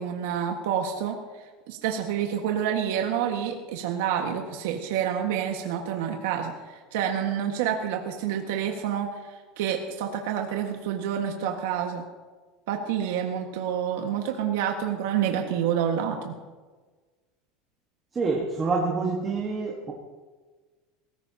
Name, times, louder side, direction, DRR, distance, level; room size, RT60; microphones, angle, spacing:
voice 1, 0.0-12.0 12.7-16.4, right 9 dB, 75° right, 2 dB, 1.5 m, -28 dB
voice 2, 18.1-19.9, right 4 dB, 15° right, -2 dB, 1.4 m, -27 dB
22.5 x 15.0 x 2.8 m, 1.4 s
cardioid pair, 175°, 0 cm